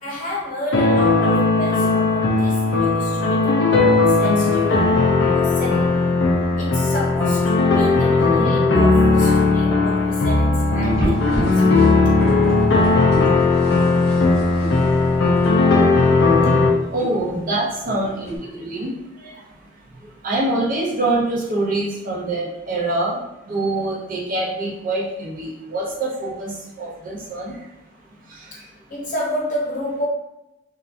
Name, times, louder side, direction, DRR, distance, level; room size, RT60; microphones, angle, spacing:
voice 1, 0.0-6.0 6.6-11.9 28.9-30.1, equal, 45° left, -4 dB, 0.8 m, -30 dB
sound 1, 0.7-16.7, left 3 dB, 65° left, 0.5 m, -17 dB
sound 2, 10.9-18.4, equal, 15° right, 1.2 m, -31 dB
voice 2, 16.9-19.3 20.2-23.2 23.5-27.6 28.4-28.5, right 2 dB, 45° right, -4 dB, 0.7 m, -25 dB
2.7 x 2.4 x 2.4 m, 0.94 s
head